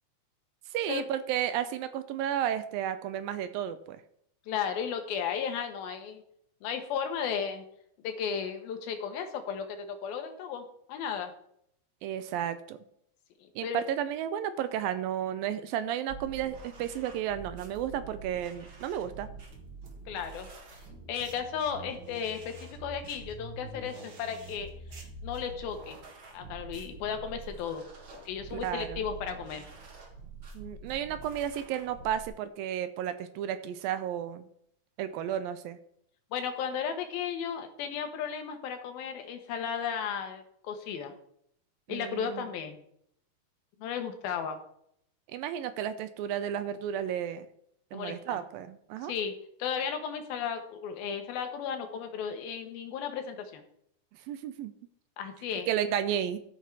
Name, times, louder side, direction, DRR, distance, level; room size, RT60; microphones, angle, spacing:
voice 1, 0.7-4.0 12.0-12.8 13.6-19.3 28.5-29.0 30.5-34.5 35.0-35.8 41.9-42.4 45.3-47.5 47.9-49.1 54.3-54.7 55.7-56.4, right 10 dB, 80° right, 11 dB, 2.3 m, -33 dB
voice 2, 4.5-6.2 6.6-7.6 8.0-11.3 13.4-13.8 20.1-20.5 21.1-26.0 26.3-27.9 28.3-29.6 36.3-41.1 41.9-42.8 43.8-44.6 47.9-48.4 49.0-49.3 49.6-53.6 55.2-55.7, left 7 dB, 75° left, 6 dB, 3.0 m, -35 dB
sound 1, 16.1-32.3, right 3 dB, 45° right, 1.7 m, -46 dB
14.5 x 5.8 x 4.7 m, 0.70 s
omnidirectional pair, 4.3 m